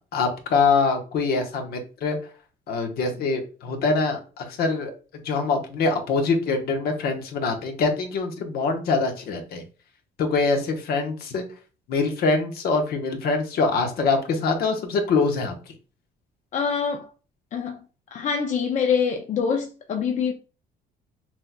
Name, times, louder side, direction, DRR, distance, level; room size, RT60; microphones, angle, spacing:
voice 1, 0.0-2.2 2.7-9.6 10.2-11.4 11.9-15.5, left 4 dB, 65° left, 1.1 m, -24 dB
voice 2, 16.5-17.1 17.5-17.8 18.1-20.3, left 6 dB, 45° left, 0.5 m, -25 dB
6.0 x 2.9 x 2.2 m
cardioid pair, 110°, 17 cm